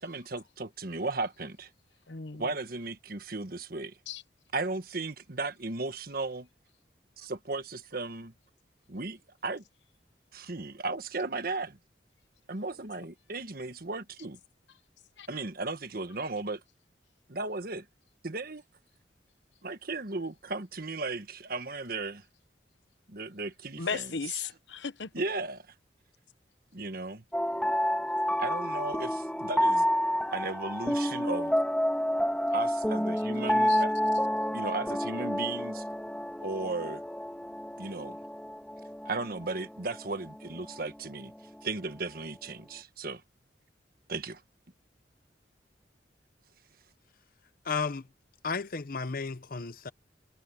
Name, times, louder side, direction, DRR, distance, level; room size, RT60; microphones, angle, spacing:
voice 1, 0.0-1.7 2.4-3.9 4.5-6.5 7.2-8.3 8.9-9.6 10.3-11.8 12.5-14.4 15.3-16.6 17.3-17.8 18.2-18.6 19.6-22.2 23.1-24.1 25.1-25.6 26.7-27.2 28.4-29.9 30.3-31.5 32.5-33.9 34.5-35.8 36.4-37.0 37.8-38.2 39.0-41.3 41.6-43.2 44.1-44.4, right 3 dB, 55° right, 1.5 m, -35 dB
voice 2, 2.1-2.5 4.1-4.2 15.2-15.3 23.8-25.1 33.7-33.8, left 5 dB, 80° left, 1.1 m, -35 dB
sound 1, 27.3-41.6, equal, 5° left, 1.5 m, -29 dB
voice 3, 47.7-48.0 48.4-49.9, left 5 dB, 50° left, 0.8 m, -33 dB
head